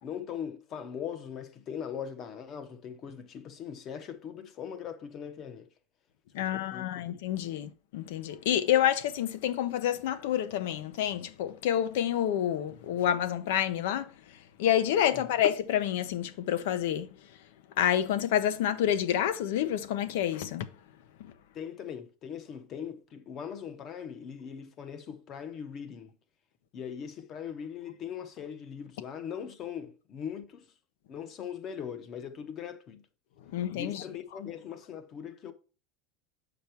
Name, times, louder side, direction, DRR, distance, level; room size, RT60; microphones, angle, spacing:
voice 1, 0.0-5.7 6.4-7.0 15.1-15.3 21.5-26.1 26.7-30.7 31.1-33.0 33.7-35.5, left 8 dB, 35° left, 0.8 m, -40 dB
voice 2, 6.3-14.1 14.6-17.1 17.8-20.7 21.2-21.3 33.5-34.0, left 10 dB, 85° left, 0.8 m, -28 dB
7.0 x 5.1 x 4.5 m
cardioid pair, 165°, 0 cm